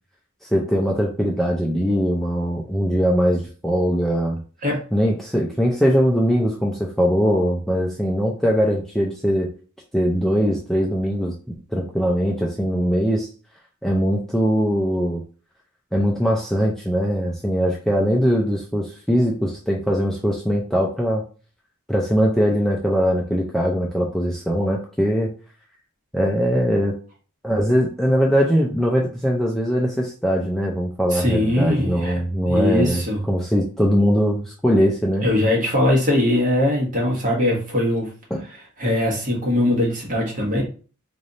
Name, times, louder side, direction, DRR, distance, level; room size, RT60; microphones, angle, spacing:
voice 1, 0.5-4.4 4.9-9.5 9.9-11.4 11.7-13.3 13.8-15.2 15.9-21.2 21.9-25.3 26.1-26.9 27.4-35.3 38.3-38.4, equal, ahead, -2 dB, 0.5 m, -21 dB
voice 2, 31.1-32.2 32.5-33.2 35.2-38.1 38.8-40.6, left 1 dB, 40° right, -2 dB, 1.4 m, -21 dB
3.3 x 2.6 x 4.0 m, 0.38 s
head